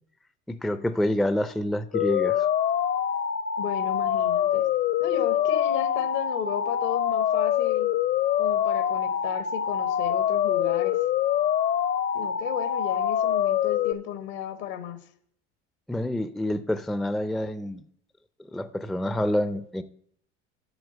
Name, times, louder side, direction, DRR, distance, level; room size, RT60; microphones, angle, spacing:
voice 1, 0.5-2.5 15.9-17.8 18.5-19.8, left 1 dB, ahead, 13 dB, 0.4 m, -27 dB
sound 1, 1.9-13.9, left 9 dB, 40° left, 0.7 m, -25 dB
voice 2, 3.6-4.6 5.0-7.9 8.4-11.0 12.1-15.0, left 9 dB, 70° left, 11 dB, 1.4 m, -34 dB
8.0 x 6.3 x 7.7 m, 0.65 s
supercardioid pair, 85°, 31 cm